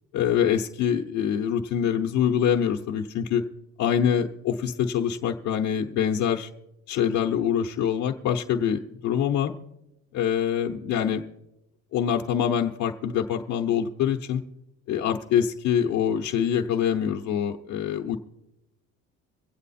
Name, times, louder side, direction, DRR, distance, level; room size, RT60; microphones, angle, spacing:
voice 1, 0.1-3.4 3.8-6.5 6.9-9.5 10.1-11.2 11.9-14.4 14.9-18.2, left 8 dB, 75° left, 0 dB, 0.9 m, -25 dB
23.5 x 8.3 x 4.2 m, 0.89 s
cardioid pair, 150°, 30 cm